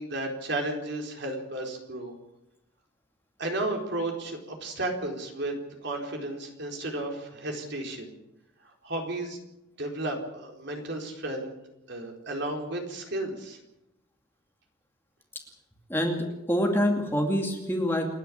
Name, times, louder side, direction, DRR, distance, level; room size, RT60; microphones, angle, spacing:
voice 1, 0.0-2.1 3.4-5.6 5.8-8.1 8.8-9.4 9.8-11.5 11.9-13.6, right 2 dB, 55° right, 2 dB, 4.3 m, -33 dB
voice 2, 15.9-18.1, equal, 10° left, 2 dB, 2.5 m, -26 dB
29.0 x 10.5 x 8.7 m, 0.89 s
head